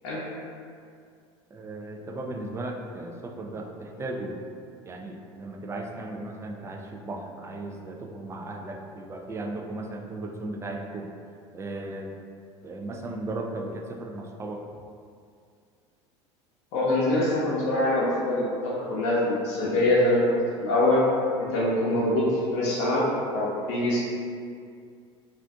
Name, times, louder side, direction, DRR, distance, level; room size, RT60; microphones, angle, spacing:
voice 1, 1.5-4.4 4.9-11.1 11.5-12.1 12.6-14.8, right 2 dB, 20° right, 2 dB, 0.3 m, -36 dB
voice 2, 16.7-21.0 21.4-22.2 22.5-23.0 23.3-24.0, left 1 dB, 70° left, -8 dB, 0.7 m, -24 dB
2.5 x 2.4 x 3.4 m, 2.3 s
supercardioid pair, 95°, 15 cm